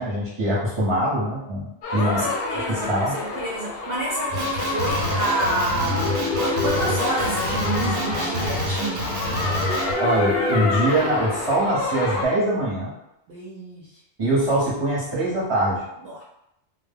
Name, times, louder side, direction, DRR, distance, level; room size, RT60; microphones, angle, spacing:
voice 1, 0.0-2.3 2.9-3.2 10.0-12.9 14.2-15.8, right 1 dB, 25° right, -6 dB, 0.7 m, -23 dB
sound 1, 1.8-12.3, left 3 dB, 65° left, 0.7 m, -29 dB
voice 2, 2.0-9.2 13.3-14.0 16.0-16.2, right 1 dB, 65° right, -4 dB, 0.7 m, -29 dB
Male speech man speaking, 4.3-9.9, equal, 85° right, 1.0 m, -28 dB
sound 2, 5.8-8.7 9.3-12.2, left 2 dB, 5° left, 0.5 m, -29 dB
2.1 x 2.0 x 3.5 m, 0.84 s
omnidirectional pair, 1.2 m